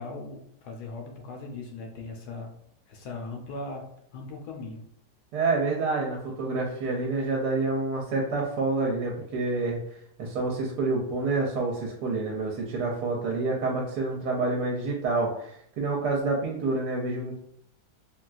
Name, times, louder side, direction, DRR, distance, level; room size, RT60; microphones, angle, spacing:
voice 1, 0.0-2.5 2.9-4.8, left 3 dB, 75° left, 1 dB, 1.1 m, -39 dB
voice 2, 5.3-9.8 10.2-17.4, right 3 dB, 80° right, -1 dB, 1.1 m, -28 dB
3.7 x 2.3 x 2.3 m, 0.71 s
omnidirectional pair, 1.8 m